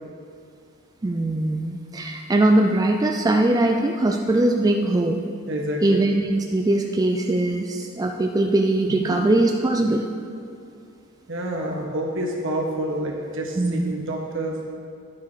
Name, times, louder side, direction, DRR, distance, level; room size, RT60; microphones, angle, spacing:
voice 1, 1.0-5.2 5.8-10.0 13.6-13.9, right 2 dB, 20° right, 3 dB, 0.3 m, -21 dB
voice 2, 5.5-6.1 8.9-9.2 11.3-14.6, right 1 dB, 60° right, 0 dB, 1.4 m, -28 dB
10.5 x 6.6 x 4.9 m, 2.4 s
head